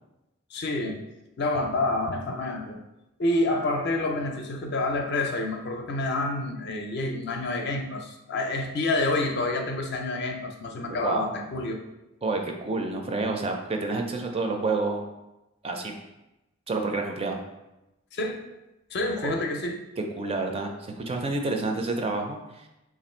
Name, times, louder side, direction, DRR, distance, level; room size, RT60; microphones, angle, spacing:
voice 1, 0.5-1.0 1.4-2.8 3.2-11.8 18.1-18.4 18.9-19.8, left 2 dB, 55° left, 3 dB, 0.5 m, -28 dB
voice 2, 12.2-15.0 15.6-15.9 16.7-17.4 19.2-19.3 20.2-22.7, right 3 dB, 30° right, 3 dB, 0.4 m, -29 dB
3.1 x 2.5 x 4.2 m, 0.94 s
head